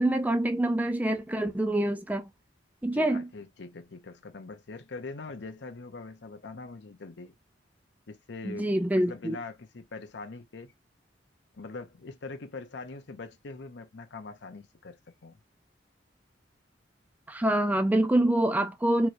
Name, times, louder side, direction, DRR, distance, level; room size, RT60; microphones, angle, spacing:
voice 1, 0.0-2.3 2.8-3.3 8.4-9.4 17.3-19.1, right 1 dB, 10° right, 0.4 m, -26 dB
voice 2, 2.9-7.3 8.1-10.7 11.5-15.4, left 3 dB, 70° left, 0.7 m, -43 dB
4.6 x 3.1 x 2.5 m
head